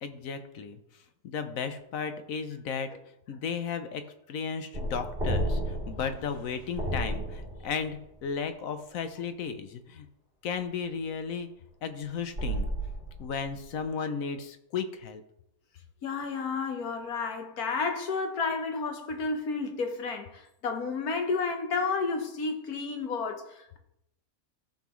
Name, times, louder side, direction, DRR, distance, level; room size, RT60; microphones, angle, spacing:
voice 1, 0.0-0.8 1.2-2.9 3.3-10.1 10.4-11.5 11.8-12.7 13.2-15.2, left 6 dB, 70° left, 1.2 m, -34 dB
sound 1, 4.7-8.0 12.4-13.6, right 1 dB, 40° right, 3.0 m, -32 dB
voice 2, 16.0-23.8, left 4 dB, 90° left, 1.6 m, -31 dB
14.5 x 5.8 x 3.1 m
omnidirectional pair, 1.5 m